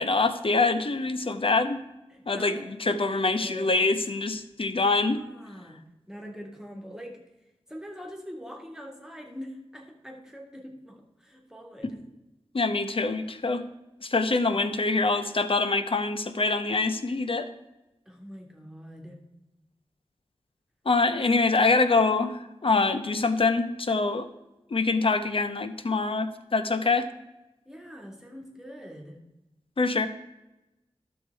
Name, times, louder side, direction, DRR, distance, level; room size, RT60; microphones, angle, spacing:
voice 1, 0.0-1.8 2.3-5.2 12.5-13.6 14.0-17.5 20.8-24.3 24.7-27.1 29.8-30.1, left 3 dB, 60° left, 10 dB, 0.9 m, -25 dB
voice 2, 2.1-2.7 3.1-3.8 5.1-12.0 18.1-19.2 27.7-29.3, equal, 5° right, 1 dB, 2.0 m, -44 dB
11.5 x 6.6 x 4.6 m, 0.99 s
wide cardioid pair, 60°, 11 cm